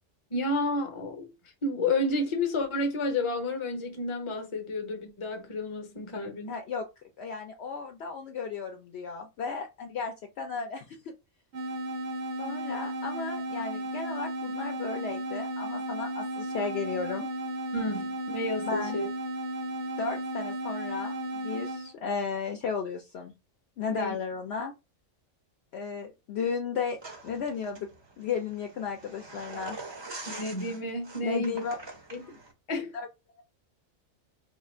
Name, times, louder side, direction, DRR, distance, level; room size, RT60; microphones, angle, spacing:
voice 1, 0.3-1.3 1.6-6.6 17.7-19.1 23.9-24.2 30.3-31.6 32.1-32.4 32.7-33.0, left 2 dB, 30° left, 0.7 m, -31 dB
voice 2, 6.5-6.9 7.2-11.1 12.4-17.3 18.7-19.0 20.0-23.3 23.8-24.7 25.7-27.0 27.2-27.9 28.2-29.8 31.2-31.7 32.9-33.1, left 5 dB, 65° left, 0.7 m, -34 dB
sound 1, 11.5-21.9, right 1 dB, 60° right, 0.9 m, -34 dB
sound 2, 27.0-32.5, right 3 dB, 30° right, 0.5 m, -44 dB
3.0 x 2.4 x 4.2 m
omnidirectional pair, 1.4 m